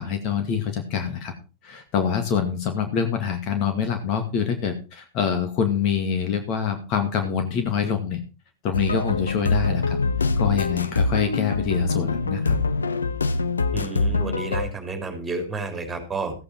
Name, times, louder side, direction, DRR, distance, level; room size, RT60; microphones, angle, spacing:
voice 1, 0.0-1.3 1.6-8.2 8.6-10.0 10.4-12.6, left 7 dB, 40° left, 6 dB, 2.1 m, -25 dB
sound 1, 8.7-14.7, left 3 dB, 75° left, 0.8 m, -24 dB
voice 2, 13.7-16.4, right 3 dB, 15° right, 6 dB, 3.8 m, -31 dB
15.0 x 8.6 x 4.7 m, 0.32 s
figure-of-eight pair, 90°, 0 cm